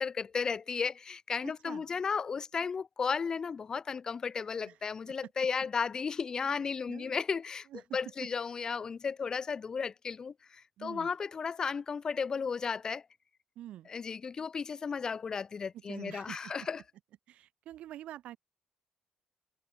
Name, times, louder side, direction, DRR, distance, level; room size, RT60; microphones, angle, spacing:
voice 1, 0.0-7.7 7.9-13.0 13.9-16.8, left 5 dB, 35° left, 1.9 m, -34 dB
voice 2, 1.4-1.8 4.7-4.8 6.9-7.2 7.7-8.0 10.8-11.1 13.6-13.9 15.7-16.5 17.3-18.4, right 13 dB, 80° right, 3.3 m, -46 dB
cardioid pair, 135°, 2 cm